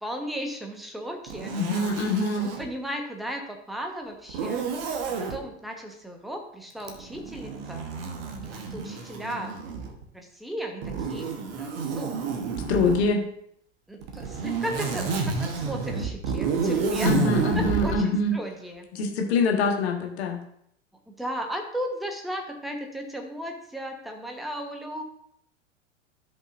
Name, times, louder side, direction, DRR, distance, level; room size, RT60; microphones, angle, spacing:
voice 1, 0.0-1.6 2.4-4.7 5.2-7.9 8.5-9.5 10.1-11.3 11.6-12.2 13.9-17.1 17.5-18.9 21.2-25.0, equal, ahead, 3 dB, 1.1 m, -35 dB
Zipper (clothing), 1.3-2.7 4.3-5.4 6.8-10.0 10.8-13.1 14.0-18.0, right 5 dB, 50° right, 1.2 m, -30 dB
voice 2, 1.5-2.5 12.7-13.2 17.0-18.3 18.9-20.4, left 3 dB, 60° left, 3 dB, 1.5 m, -24 dB
13.5 x 5.3 x 2.6 m, 0.70 s
figure-of-eight pair, 85°, 36 cm